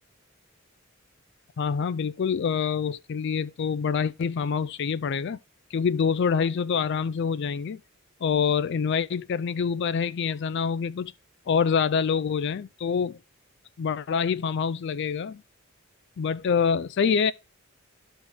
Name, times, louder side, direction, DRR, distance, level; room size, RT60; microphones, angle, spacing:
voice 1, 1.6-5.4 5.7-7.8 8.2-11.1 11.5-13.2 13.8-15.4 16.2-17.3, left 6 dB, 55° left, 0.4 m, -26 dB
11.5 x 4.5 x 3.5 m
head